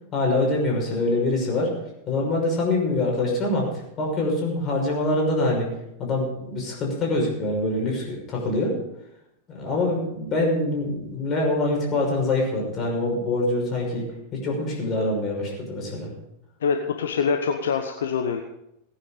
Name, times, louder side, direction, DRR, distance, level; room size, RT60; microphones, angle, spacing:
voice 1, 0.1-1.7 2.1-3.7 4.0-5.7 6.0-8.8 9.5-14.1 14.3-16.1, left 2 dB, 30° left, -1 dB, 5.9 m, -24 dB
voice 2, 16.6-18.4, left 6 dB, 65° left, 5 dB, 1.0 m, -24 dB
18.0 x 9.8 x 5.1 m, 0.84 s
figure-of-eight pair, 90°, 0 cm